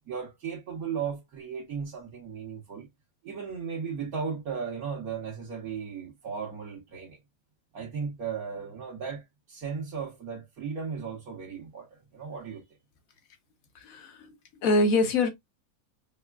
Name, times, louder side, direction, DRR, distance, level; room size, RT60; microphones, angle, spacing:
voice 1, 0.1-2.9 3.2-7.2 7.7-12.6, right 6 dB, 80° right, 1.5 m, -36 dB
voice 2, 13.7-14.4 14.6-15.3, left 2 dB, 75° left, 1.3 m, -24 dB
4.8 x 2.4 x 2.2 m
omnidirectional pair, 1.5 m